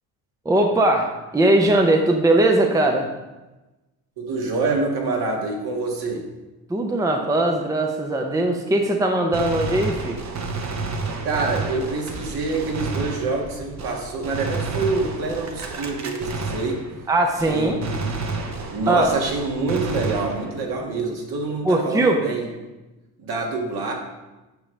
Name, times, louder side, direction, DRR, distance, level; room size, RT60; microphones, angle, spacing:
voice 1, 0.4-3.1 6.7-10.2 17.1-17.8 18.9-19.1 21.6-22.2, right 1 dB, 10° right, 3 dB, 0.7 m, -20 dB
voice 2, 4.2-6.2 11.2-16.8 17.5-18.4 18.7-22.5 23.2-23.9, right 3 dB, 55° right, 0 dB, 1.9 m, -26 dB
Gunshot gunfire, 9.3-17.1 17.4-20.7, right 3 dB, 40° right, 1.1 m, -30 dB
8.8 x 5.5 x 3.3 m, 1.1 s
supercardioid pair, 85°, 44 cm